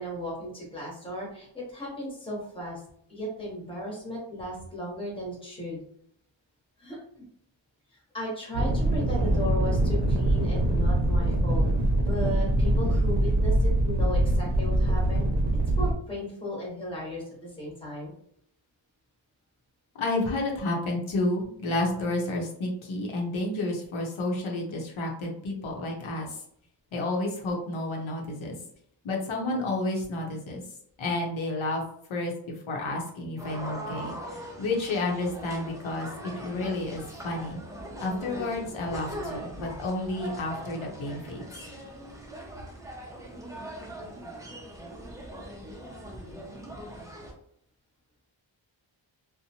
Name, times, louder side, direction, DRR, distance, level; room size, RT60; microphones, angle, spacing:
voice 1, 0.0-2.8 3.1-5.8 6.8-7.0 7.9-15.3 15.8-18.1, equal, 10° left, -4 dB, 0.9 m, -35 dB
sound 1, 8.5-15.9, right 1 dB, 60° right, 0.6 m, -24 dB
voice 2, 19.9-26.4 26.9-28.6 29.0-30.6 31.0-31.8 32.1-37.6 38.0-41.4, left 2 dB, 85° left, 0 dB, 0.8 m, -31 dB
sound 2, 33.4-47.3, right 1 dB, 10° right, 0.3 m, -41 dB
2.7 x 2.1 x 2.8 m, 0.68 s
wide cardioid pair, 170°, 47 cm